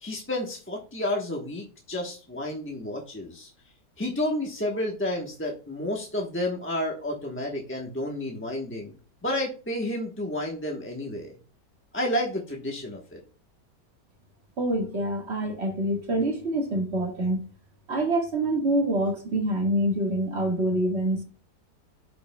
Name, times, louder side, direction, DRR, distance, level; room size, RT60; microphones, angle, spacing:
voice 1, 0.0-3.5 4.0-8.9 9.2-11.4 11.9-13.2, left 1 dB, 10° left, 0.8 m, -31 dB
voice 2, 14.6-17.4 17.9-21.2, right 1 dB, 40° right, 2.0 m, -26 dB
12.0 x 5.1 x 2.2 m
omnidirectional pair, 1.9 m